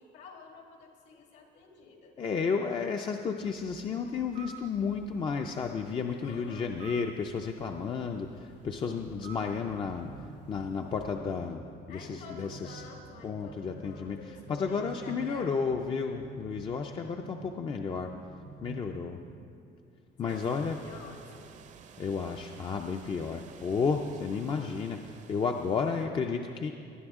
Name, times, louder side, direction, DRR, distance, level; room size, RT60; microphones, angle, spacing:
voice 1, 0.0-2.2 6.2-6.7 11.9-15.6 20.2-21.4, left 4 dB, 75° left, 1 dB, 2.1 m, -49 dB
voice 2, 2.2-10.1 10.5-11.6 11.9-12.9 13.2-14.2 14.5-18.1 18.6-19.2 20.2-20.8 22.0-26.7, left 5 dB, 30° left, 3 dB, 0.4 m, -32 dB
sound 1, 3.4-11.1, right 7 dB, 90° right, 1.9 m, -53 dB
sound 2, 7.3-19.5, right 6 dB, 70° right, 0.7 m, -50 dB
sound 3, 20.3-26.1, right 7 dB, 40° right, 0.6 m, -53 dB
19.5 x 10.5 x 3.6 m, 2.4 s
cardioid pair, 170°, 18 cm